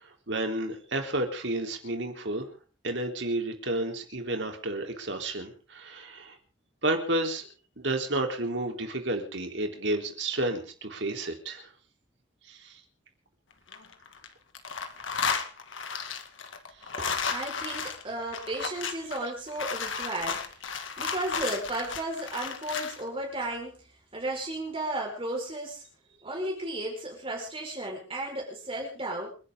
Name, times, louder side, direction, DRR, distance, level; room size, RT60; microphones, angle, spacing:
voice 1, 0.0-2.5 2.8-6.4 6.8-7.5 7.8-11.7 12.5-12.8, right 1 dB, 65° right, 4 dB, 3.7 m, -31 dB
sound 1, 13.5-14.3 14.5-23.0, left 5 dB, 85° left, 2.1 m, -33 dB
voice 2, 17.0-20.4 21.0-23.8 24.1-25.8 26.2-29.3, right 1 dB, 30° right, -1 dB, 4.8 m, -34 dB
29.0 x 11.0 x 3.8 m, 0.37 s
head